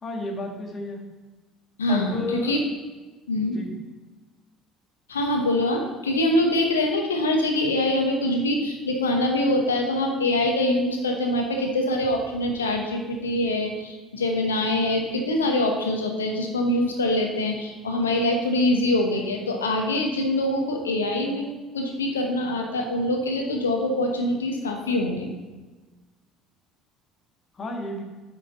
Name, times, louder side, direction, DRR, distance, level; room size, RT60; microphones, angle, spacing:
voice 1, 0.0-1.0 1.9-2.6 3.4-3.7 27.5-28.0, left 2 dB, 35° left, 1 dB, 1.7 m, -32 dB
voice 2, 1.8-2.6 3.3-3.6 5.1-21.4 21.7-25.3, left 1 dB, 85° left, 3 dB, 1.0 m, -24 dB
8.4 x 5.7 x 4.1 m, 1.2 s
hypercardioid pair, 60°, 0 cm